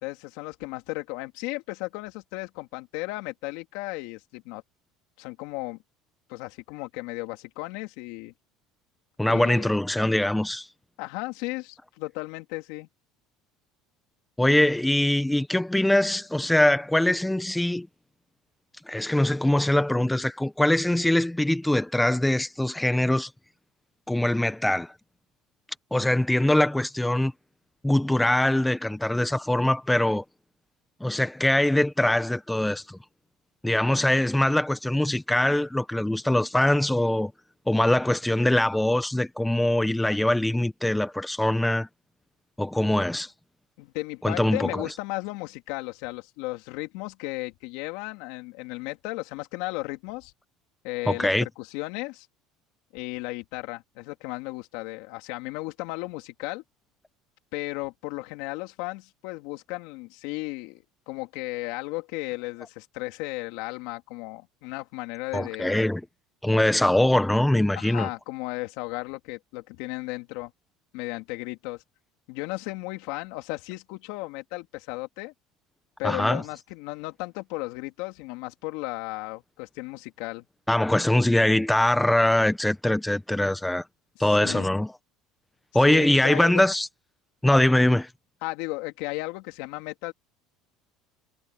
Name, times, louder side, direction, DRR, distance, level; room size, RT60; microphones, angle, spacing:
voice 1, 0.0-4.6 5.2-5.8 6.3-8.3 9.3-9.7 11.0-12.9 43.8-50.3 50.8-52.3 52.9-56.6 57.5-65.8 67.7-70.5 70.9-71.8 72.3-75.3 76.0-80.4 84.3-84.7 85.8-86.6 88.4-90.1, left 22 dB, 75° left, 3.2 m, -35 dB
voice 2, 9.2-10.7 14.4-17.9 18.9-23.3 24.1-24.9 25.9-27.3 27.8-30.2 31.0-33.0 33.6-37.3 37.7-41.9 42.6-43.3 44.2-44.9 51.1-51.5 65.3-66.0 66.4-68.1 76.0-76.4 80.7-83.8 84.2-84.9 85.7-86.9 87.4-88.1, left 1 dB, 5° left, 1.0 m, -22 dB
cardioid pair, 135°, 0 cm